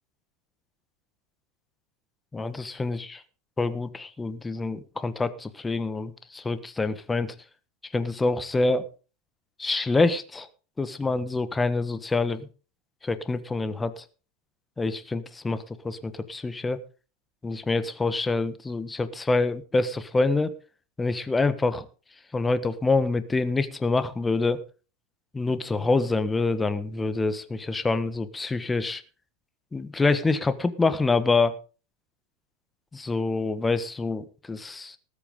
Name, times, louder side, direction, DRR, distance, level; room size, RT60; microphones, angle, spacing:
voice 1, 2.3-3.2 3.6-7.3 7.9-8.9 9.6-10.5 10.8-12.5 13.0-14.0 14.8-16.8 17.4-20.5 21.0-21.9 22.3-24.6 25.3-29.0 29.7-31.6 32.9-35.0, left 3 dB, 15° left, 1.3 m, -26 dB
19.5 x 8.5 x 3.7 m
hypercardioid pair, 85°, 0 cm